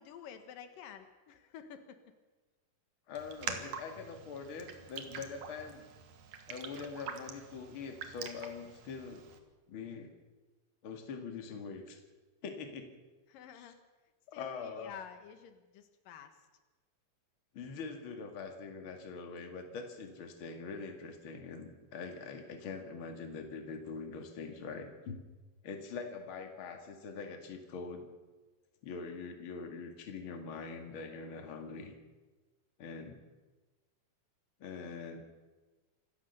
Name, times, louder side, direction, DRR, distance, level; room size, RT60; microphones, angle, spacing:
voice 1, 0.0-2.0 13.3-13.8 14.3-16.4, left 8 dB, 80° left, 9 dB, 3.0 m, -50 dB
voice 2, 3.1-5.8 6.5-9.3 9.7-10.1 10.8-12.0 12.4-12.9 13.5-13.7 14.3-14.9 17.5-25.2 25.6-28.1 28.8-31.9 32.8-33.2 34.6-35.2, left 5 dB, 40° left, 5 dB, 2.6 m, -43 dB
Raindrop, 3.1-9.4, right 6 dB, 60° right, 2.8 m, -45 dB
26.0 x 14.5 x 6.8 m, 1.2 s
omnidirectional pair, 3.9 m